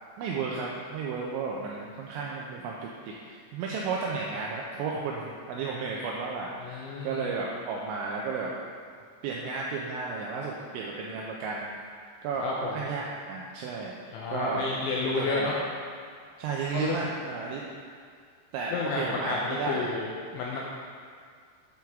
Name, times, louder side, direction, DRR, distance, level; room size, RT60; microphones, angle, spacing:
voice 1, 0.2-8.5 9.2-14.7 15.2-15.5 16.4-17.9 18.5-19.9, right 4 dB, 85° right, -2 dB, 2.6 m, -33 dB
voice 2, 6.6-7.3 12.4-12.9 14.1-15.5 16.7-17.0 18.7-20.1 20.3-20.6, left 3 dB, 80° left, -3 dB, 2.7 m, -31 dB
8.7 x 4.6 x 3.5 m, 2.1 s
omnidirectional pair, 5.8 m